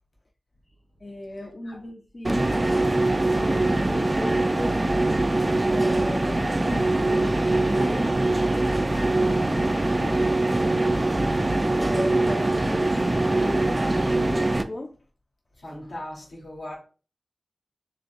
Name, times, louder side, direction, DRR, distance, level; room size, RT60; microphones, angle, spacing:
voice 1, 1.0-4.8 5.7-8.1 11.7-14.9, left 1 dB, 50° left, 0.6 m, -36 dB
sound 1, 2.2-14.6, right 2 dB, 35° right, 0.4 m, -23 dB
voice 2, 9.8-10.3 15.6-16.8, left 1 dB, 90° left, 1.5 m, -38 dB
4.0 x 3.1 x 2.6 m
cardioid pair, 45°, 0 cm